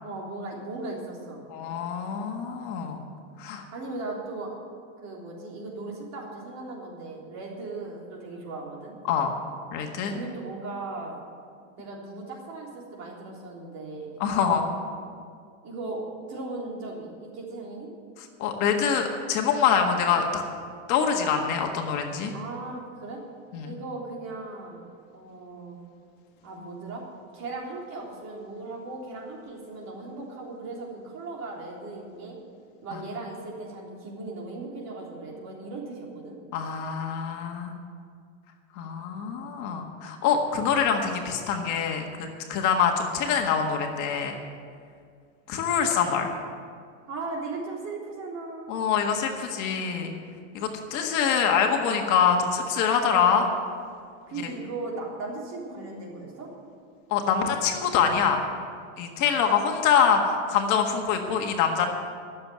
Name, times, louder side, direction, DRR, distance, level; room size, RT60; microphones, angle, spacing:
voice 1, 0.0-1.4 3.7-4.6 5.0-8.9 10.1-11.2 11.8-14.3 15.6-17.9 22.3-23.2 23.6-24.8 25.1-25.8 26.4-27.0 27.3-32.4 32.8-36.4 47.1-48.9 54.3-56.5, right 3 dB, 40° right, -2 dB, 3.6 m, -37 dB
voice 2, 1.5-3.0 3.4-3.6 9.1-9.3 9.7-10.1 14.2-14.7 18.4-20.4 20.9-22.3 23.5-23.7 32.9-33.0 36.5-37.7 38.7-44.4 45.5-46.3 48.7-50.1 50.5-53.5 57.1-58.4 59.0-61.9, left 7 dB, 45° left, 3 dB, 1.7 m, -25 dB
12.5 x 7.4 x 9.3 m, 2.1 s
supercardioid pair, 130°, 39 cm